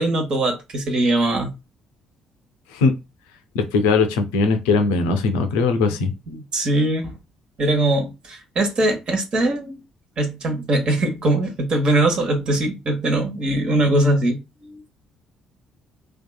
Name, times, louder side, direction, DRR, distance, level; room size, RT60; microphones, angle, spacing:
voice 1, 0.0-1.5 6.3-7.2 7.6-9.8 10.2-14.8, right 1 dB, 45° right, 0.9 m, -21 dB
voice 2, 3.5-6.1, left 4 dB, 70° left, 0.5 m, -19 dB
2.7 x 2.3 x 2.2 m
figure-of-eight pair, 45°, 2 cm